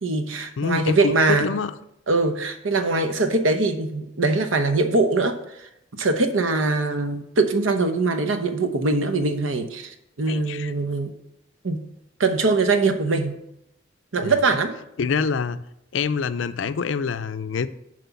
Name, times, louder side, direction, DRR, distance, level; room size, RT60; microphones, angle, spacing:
voice 1, 0.0-1.5 2.1-5.7 6.0-11.1 11.6-11.9 12.2-13.4 14.1-14.8, right 3 dB, 85° right, 8 dB, 0.9 m, -22 dB
voice 2, 0.6-1.7 10.3-10.7 14.2-14.4 15.0-15.6 15.9-17.7, left 5 dB, 70° left, 13 dB, 0.5 m, -26 dB
7.6 x 5.0 x 7.0 m, 0.81 s
head